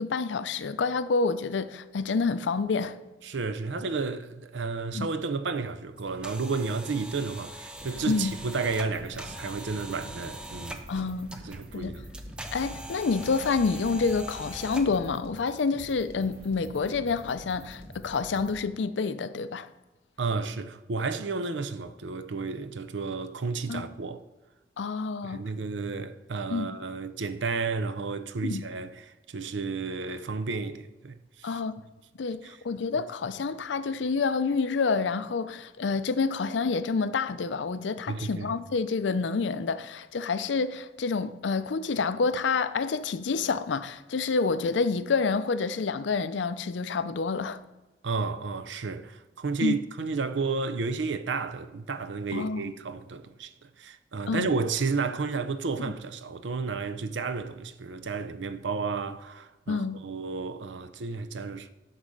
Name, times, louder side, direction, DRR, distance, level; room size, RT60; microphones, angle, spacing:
voice 1, 0.0-3.0 4.9-5.1 8.1-8.3 10.9-11.4 11.7-11.9 12.5-19.7 23.7-23.9 24.8-25.4 26.5-26.7 28.4-28.6 31.4-31.8 32.2-47.6 49.6-49.8 52.3-52.7 54.3-54.5 59.7-60.0, left 4 dB, 90° left, 0.5 m, -28 dB
voice 2, 3.2-10.8 11.4-12.0 20.2-24.2 25.2-28.9 29.3-31.6 32.4-32.6 38.1-38.5 48.0-61.7, right 4 dB, 90° right, 0.6 m, -32 dB
sound 1, 6.0-15.1, right 1 dB, 5° right, 0.5 m, -42 dB
sound 2, 7.7-18.5, equal, 70° right, 2.2 m, -47 dB
10.0 x 4.1 x 6.4 m
head